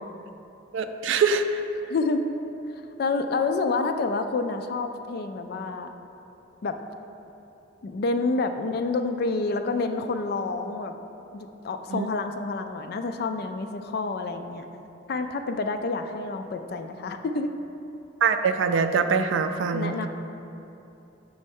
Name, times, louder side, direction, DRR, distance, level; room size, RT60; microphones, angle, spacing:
voice 1, 0.7-1.6 11.9-12.1 18.2-19.9, right 5 dB, 75° right, 8 dB, 0.3 m, -23 dB
voice 2, 1.9-2.2 3.0-5.9 6.6-6.8 7.8-10.9 11.3-14.7 15.1-17.5 19.7-20.1, left 3 dB, 55° left, 7 dB, 0.3 m, -28 dB
6.2 x 3.2 x 5.3 m, 2.9 s
head